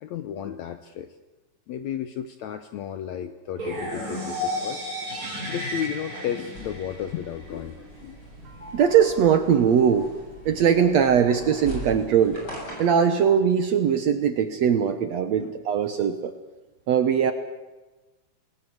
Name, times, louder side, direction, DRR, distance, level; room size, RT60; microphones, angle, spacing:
voice 1, 0.0-1.2 1.7-4.8 5.5-8.2 15.4-15.7, left 10 dB, 70° left, 10 dB, 1.7 m, -33 dB
sound 1, 3.6-7.5, left 1 dB, 45° right, 8.6 m, -32 dB
sound 2, 6.5-13.1, equal, 25° left, 8.2 m, -40 dB
voice 2, 8.5-10.1 10.5-12.4 12.8-16.3 16.9-17.3, right 8 dB, 65° right, 9 dB, 1.8 m, -21 dB
28.5 x 20.0 x 7.8 m, 1.2 s
omnidirectional pair, 4.2 m